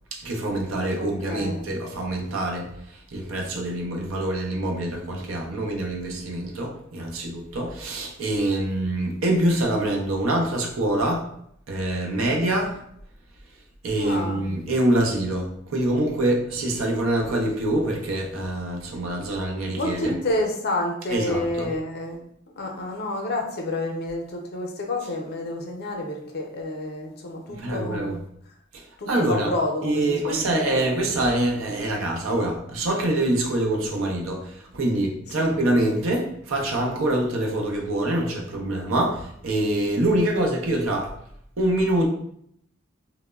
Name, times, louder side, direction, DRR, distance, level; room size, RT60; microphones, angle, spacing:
voice 1, 0.1-11.3 11.7-12.8 13.8-20.2 21.1-21.7 27.6-28.2 28.7-29.5 29.8-41.1 41.6-42.1, right 1 dB, 90° right, 1 dB, 0.6 m, -25 dB
voice 2, 0.9-1.7 14.0-14.4 19.7-22.2 22.6-28.1 29.0-30.7 35.4-35.5, left 1 dB, 55° left, 2 dB, 0.5 m, -29 dB
2.9 x 2.0 x 2.2 m, 0.70 s
head